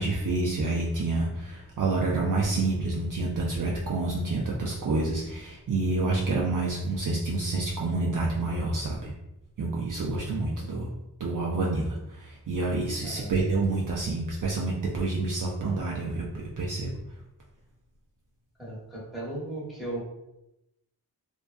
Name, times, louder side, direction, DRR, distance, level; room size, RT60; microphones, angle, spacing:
voice 1, 0.0-9.1 9.6-10.9 11.2-17.0, right 2 dB, 50° right, -4 dB, 0.4 m, -28 dB
voice 2, 18.6-20.0, right 1 dB, ahead, -7 dB, 1.0 m, -36 dB
2.5 x 2.2 x 2.3 m, 0.91 s
wide cardioid pair, 85°, 40 cm